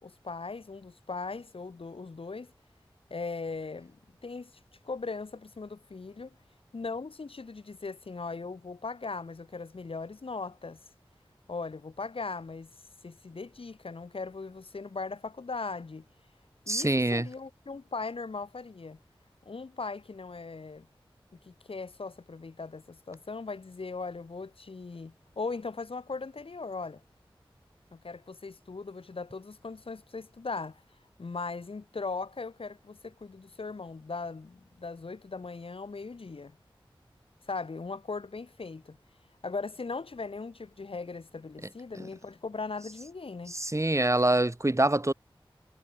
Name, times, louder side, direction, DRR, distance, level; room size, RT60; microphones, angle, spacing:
voice 1, 0.0-2.5 3.1-4.0 4.2-4.5 4.8-6.3 6.7-10.8 11.5-12.7 13.0-16.0 16.6-19.0 19.4-20.9 21.4-27.0 27.9-30.8 31.2-36.6 37.5-39.0 39.4-43.6, left 4 dB, 80° left, 3.1 m, -39 dB
voice 2, 16.7-17.3 43.5-45.1, right 1 dB, 30° right, 5.3 m, -25 dB
cardioid pair, 40°, 9 cm